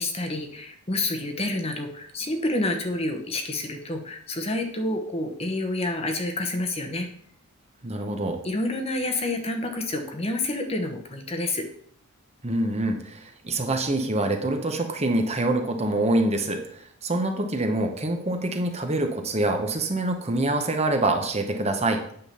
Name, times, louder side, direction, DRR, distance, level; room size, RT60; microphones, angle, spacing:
voice 1, 0.0-7.1 8.4-11.6, left 2 dB, 25° left, 4 dB, 1.0 m, -28 dB
voice 2, 7.8-8.4 12.4-22.0, right 2 dB, 30° right, 4 dB, 0.9 m, -25 dB
9.0 x 3.7 x 6.8 m, 0.64 s
head